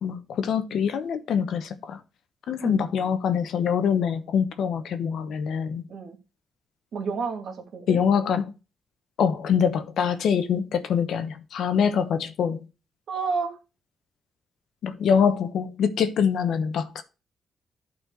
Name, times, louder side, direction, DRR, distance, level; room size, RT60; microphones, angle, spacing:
voice 1, 0.0-2.0 2.5-5.8 7.9-8.4 9.2-12.6 14.8-17.0, left 7 dB, 75° left, 1.0 m, -24 dB
voice 2, 6.9-8.0 13.1-13.6, right 5 dB, 65° right, 2.0 m, -30 dB
12.0 x 4.3 x 4.6 m
cardioid pair, 115°, 0 cm